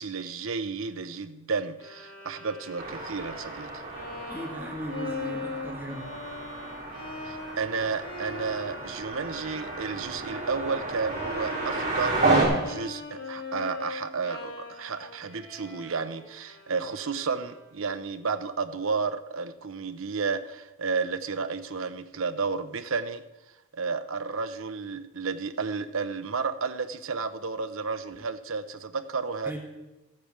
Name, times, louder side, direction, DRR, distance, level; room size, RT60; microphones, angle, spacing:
voice 1, 0.0-3.9 7.2-23.2 23.7-29.6, right 5 dB, 60° right, 10 dB, 0.7 m, -32 dB
Bowed string instrument, 1.8-17.9, left 3 dB, 70° left, 2.7 m, -41 dB
sound 1, 2.8-12.4, right 3 dB, 35° right, 3.8 m, -31 dB
voice 2, 4.3-6.1 29.4-29.6, right 1 dB, 10° right, 0 dB, 1.3 m, -37 dB
13.5 x 8.4 x 5.0 m, 1.0 s
head